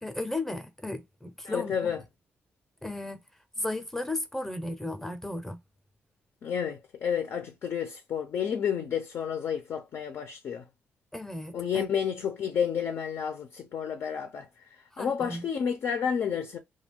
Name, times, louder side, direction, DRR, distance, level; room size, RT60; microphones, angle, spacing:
voice 1, 0.0-1.9 2.8-3.2 3.6-5.6 11.1-11.9 14.9-15.4, left 2 dB, 5° left, 0.6 m, -35 dB
voice 2, 1.5-2.0 6.4-10.6 11.5-14.5 15.0-16.6, left 7 dB, 65° left, 0.5 m, -30 dB
2.4 x 2.2 x 3.4 m
cardioid pair, 105°, 5 cm